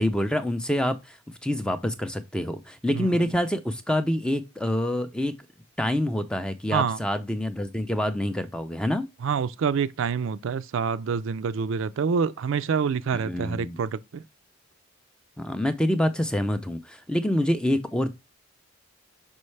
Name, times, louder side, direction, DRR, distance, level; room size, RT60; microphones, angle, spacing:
voice 1, 0.0-5.3 5.8-9.1 13.1-13.8 15.4-18.1, left 1 dB, 5° left, 0.4 m, -26 dB
voice 2, 9.2-14.2, right 6 dB, 60° right, 0.3 m, -27 dB
5.5 x 5.3 x 3.2 m
head